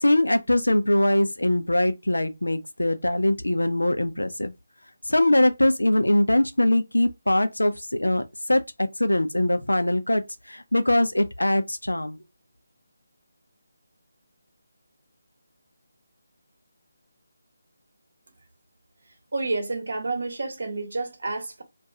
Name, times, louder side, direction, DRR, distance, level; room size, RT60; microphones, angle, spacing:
voice 1, 0.0-4.5 5.1-8.2 8.5-10.2 10.5-12.2, left 1 dB, 90° left, 0.5 m, -22 dB
voice 2, 19.3-21.6, right 3 dB, 60° right, 1.0 m, -29 dB
2.4 x 2.2 x 2.7 m
figure-of-eight pair, 155°, 0 cm